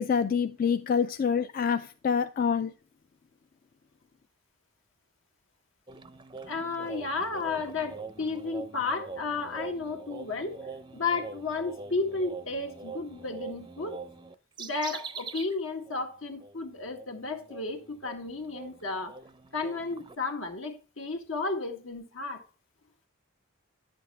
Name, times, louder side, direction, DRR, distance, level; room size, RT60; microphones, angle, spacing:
voice 1, 0.0-2.7, left 6 dB, 40° left, 0.3 m, -26 dB
sound 1, 5.9-15.6 15.9-16.0 16.4-20.2, right 4 dB, 20° right, 0.5 m, -44 dB
voice 2, 6.5-10.6 10.9-14.0 14.6-19.2 19.5-22.5, left 3 dB, 75° left, 1.8 m, -33 dB
10.0 x 6.9 x 3.4 m
head